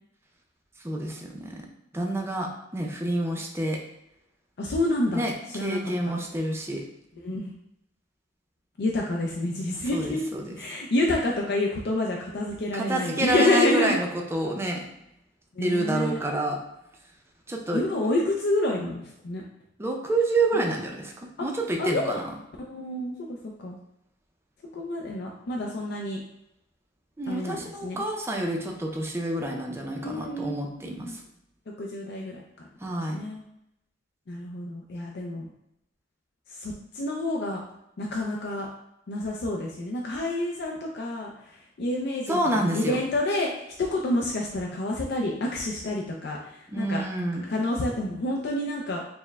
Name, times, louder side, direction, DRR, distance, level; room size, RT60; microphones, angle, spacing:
voice 1, 0.8-1.7 1.9-3.8 5.1-6.8 9.9-10.6 12.7-14.8 15.6-16.6 17.5-17.8 19.8-22.3 27.2-31.2 32.8-33.2 42.3-43.0 46.7-47.4, right 1 dB, 15° right, 1 dB, 0.5 m, -28 dB
voice 2, 4.6-5.2 5.5-6.1 7.2-7.5 8.8-10.2 10.6-14.0 15.5-16.2 17.7-19.4 20.5-20.6 21.4-21.5 21.8-22.2 22.6-23.8 24.7-26.2 27.3-28.0 30.0-31.2 31.8-32.4 33.1-33.4 34.3-35.5 36.5-37.6 38.0-38.7 39.1-42.4 42.7-47.0 47.5-49.0, left 1 dB, 60° left, -1 dB, 0.4 m, -28 dB
4.3 x 2.1 x 3.4 m, 0.81 s
head